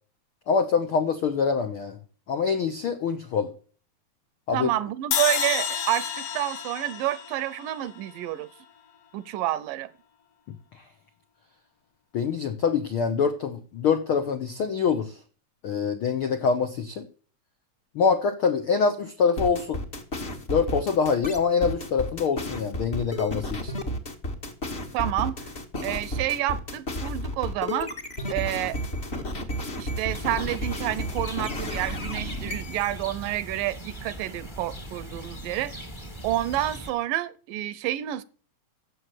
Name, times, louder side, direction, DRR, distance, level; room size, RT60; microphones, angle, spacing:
voice 1, 0.5-2.0 2.3-3.5 4.5-4.7 12.1-15.2 15.6-17.1 17.9-19.8 20.5-23.7, left 5 dB, 80° left, 1.2 m, -25 dB
voice 2, 4.5-8.5 9.1-9.9 24.9-25.4 25.8-27.9 28.3-28.8 29.3-29.5 29.8-35.7 36.2-38.2, right 14 dB, 80° right, 2.3 m, -29 dB
sound 1, 5.1-8.3, left 8 dB, 60° left, 1.7 m, -30 dB
sound 2, 19.4-32.9, equal, 30° left, 1.2 m, -32 dB
sound 3, 30.1-36.9, right 1 dB, 15° left, 1.0 m, -40 dB
15.5 x 6.6 x 6.6 m
omnidirectional pair, 4.0 m